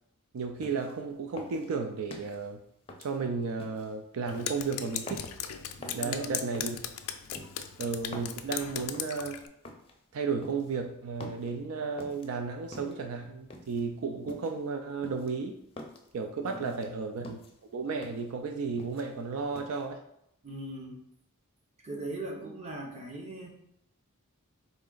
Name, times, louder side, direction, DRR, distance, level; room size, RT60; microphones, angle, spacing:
voice 1, 0.3-2.6 3.0-5.2 5.9-6.8 7.8-9.4 10.1-15.6 16.1-17.4 17.7-20.0, right 4 dB, 70° right, 5 dB, 0.4 m, -33 dB
sound 1, 0.6-1.0 1.4-2.4 2.9-3.9 4.3-4.6 5.1-5.4 5.8-6.1 6.5-6.8 7.3-8.4 8.9-9.2 9.6-10.0 10.4-10.8 11.2-11.5 12.0-12.3 12.7-13.1 13.5-13.8 14.3-14.6 15.0-16.1 16.5-16.9 17.2-17.6 18.0-18.3 18.6-19.2 19.6-19.8, left 1 dB, 25° left, 0.5 m, -46 dB
Drip, 4.3-9.5, left 9 dB, 90° left, 0.4 m, -38 dB
voice 2, 5.8-6.3 16.4-16.8 20.4-21.0 21.8-23.5, right 2 dB, 30° right, 0 dB, 0.8 m, -40 dB
3.9 x 3.2 x 3.8 m, 0.76 s
head